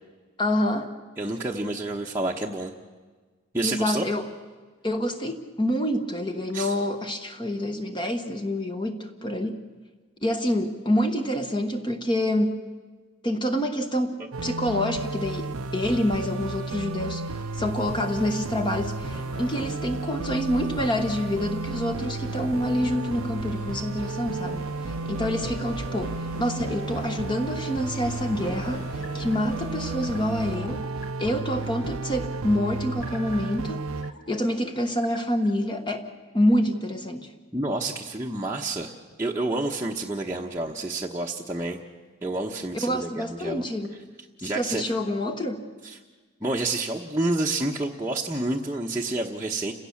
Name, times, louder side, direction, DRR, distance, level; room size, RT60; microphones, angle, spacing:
voice 1, 0.4-0.9 3.6-4.3 4.8-9.6 10.2-12.7 13.2-30.9 31.2-33.9 34.3-36.1 36.3-37.3 42.8-44.0 44.4-45.7, left 1 dB, 20° left, 6 dB, 1.2 m, -27 dB
voice 2, 1.2-2.7 3.5-4.0 6.5-6.8 37.5-38.9 39.2-41.8 42.2-43.6 44.4-44.8 45.8-46.0 46.4-49.7, right 2 dB, 10° right, -3 dB, 1.0 m, -29 dB
sound 1, 14.3-34.1, right 3 dB, 90° right, 0.7 m, -33 dB
sound 2, 15.0-30.6, equal, 85° left, 6.3 m, -43 dB
sound 3, 28.2-35.5, left 3 dB, 45° left, 2.1 m, -49 dB
30.0 x 16.5 x 7.2 m, 1.4 s
head